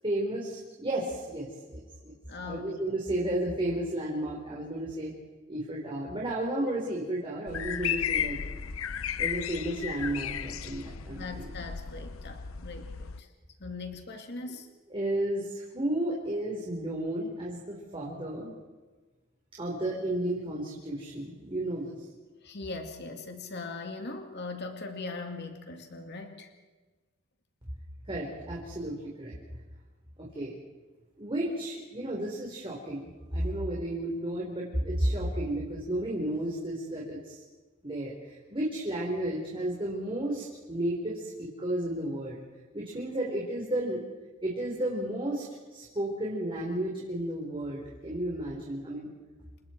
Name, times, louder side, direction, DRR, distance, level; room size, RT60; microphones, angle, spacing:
voice 1, 0.0-2.1 2.4-5.1 5.5-8.4 9.2-11.5 14.9-18.5 19.6-21.9 28.1-29.3 30.2-30.5 31.2-37.4 37.8-42.4 42.7-44.0 44.4-49.1, right 1 dB, 25° right, -4 dB, 4.1 m, -33 dB
voice 2, 2.3-2.8 11.1-13.3 13.6-14.8 22.4-26.5, left 3 dB, 55° left, 4 dB, 2.2 m, -40 dB
sound 1, 7.5-13.2, left 8 dB, 80° left, 0.8 m, -34 dB
29.0 x 25.5 x 4.5 m, 1.3 s
head